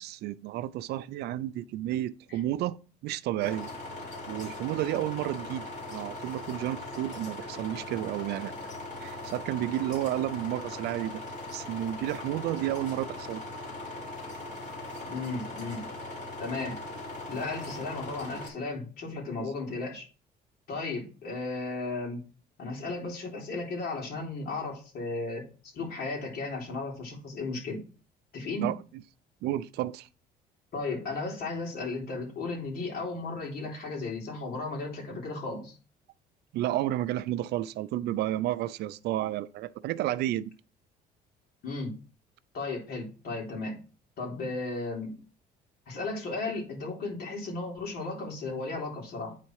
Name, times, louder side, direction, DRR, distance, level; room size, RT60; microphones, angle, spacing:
voice 1, 0.0-2.8 3.0-3.7 4.3-8.5 9.0-11.1 11.5-13.4 19.4-19.5 28.6-28.8 29.4-30.1 36.5-40.5, right 13 dB, 75° right, 0.5 m, -31 dB
sound 1, 3.4-18.5, left 2 dB, 45° left, 3.0 m, -40 dB
voice 2, 15.1-15.8 16.4-16.8 17.3-20.1 20.7-22.2 22.6-25.5 25.7-27.8 28.3-28.7 30.7-35.8 41.6-41.9 42.5-43.8 44.2-45.2 45.9-49.4, left 3 dB, 65° left, 3.7 m, -35 dB
9.1 x 4.2 x 4.7 m
cardioid pair, 110°, 17 cm